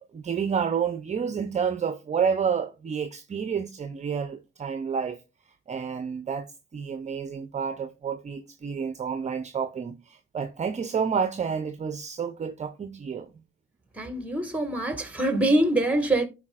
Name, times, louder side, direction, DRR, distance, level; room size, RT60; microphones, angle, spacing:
voice 1, 0.1-5.2 5.7-13.3, right 6 dB, 35° right, 0.7 m, -29 dB
voice 2, 14.0-16.3, right 1 dB, 5° right, 1.7 m, -24 dB
14.0 x 4.7 x 2.4 m
cardioid pair, 90°, 20 cm